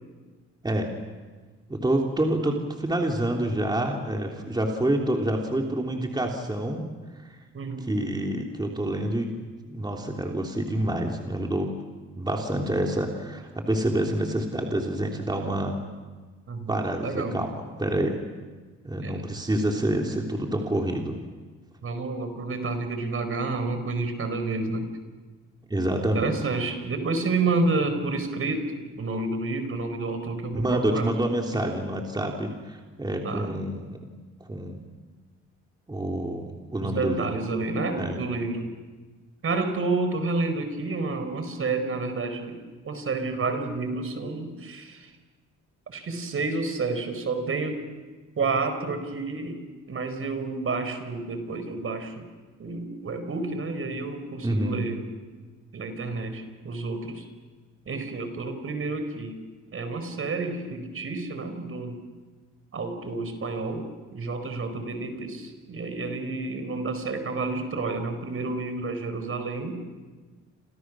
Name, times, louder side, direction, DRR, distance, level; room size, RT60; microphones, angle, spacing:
voice 1, 1.7-6.9 7.2-7.3 7.9-9.4 9.7-11.7 12.2-15.8 16.7-17.5 17.8-18.2 18.8-21.2 25.7-26.4 30.5-34.0 34.5-34.8 35.9-37.2 38.0-38.2 54.4-54.8, right 1 dB, 15° right, 1 dB, 3.3 m, -27 dB
voice 2, 7.5-7.9 16.5-17.3 19.0-19.3 21.8-24.9 26.1-31.1 33.2-33.5 36.8-38.7 39.4-42.6 42.8-45.1 45.9-47.8 48.4-49.6 49.9-52.3 52.6-55.1 55.7-57.3 57.9-59.4 59.7-62.0 62.7-69.8, right 3 dB, 45° right, 8 dB, 4.6 m, -30 dB
29.5 x 27.5 x 6.3 m, 1.4 s
cardioid pair, 90°, 30 cm